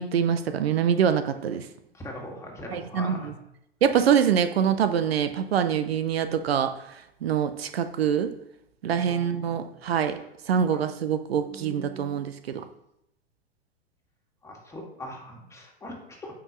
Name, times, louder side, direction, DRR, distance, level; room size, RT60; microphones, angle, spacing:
voice 1, 0.0-1.6 2.7-3.3 3.8-6.7 7.2-8.3 8.8-10.2 10.5-12.6, right 8 dB, 70° right, 10 dB, 0.7 m, -24 dB
voice 2, 1.9-3.4 8.9-10.2 10.7-10.8 11.5-12.2 14.4-16.3, left 1 dB, 10° left, -1 dB, 2.1 m, -41 dB
8.7 x 6.0 x 3.1 m, 0.80 s
hypercardioid pair, 105°, 31 cm